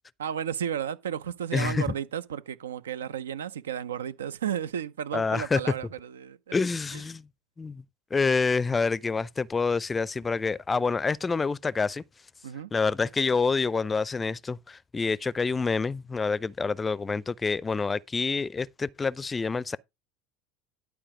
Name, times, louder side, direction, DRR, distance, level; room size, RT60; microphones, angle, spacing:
voice 1, 0.2-6.5 6.9-7.0 12.4-12.7, right 9 dB, 80° right, 0.7 m, -33 dB
voice 2, 1.5-1.9 5.1-5.6 6.5-7.3 7.6-7.8 8.1-12.0 12.7-19.8, left 4 dB, 20° left, 0.5 m, -27 dB
11.5 x 4.9 x 4.9 m
hypercardioid pair, 75°, 0 cm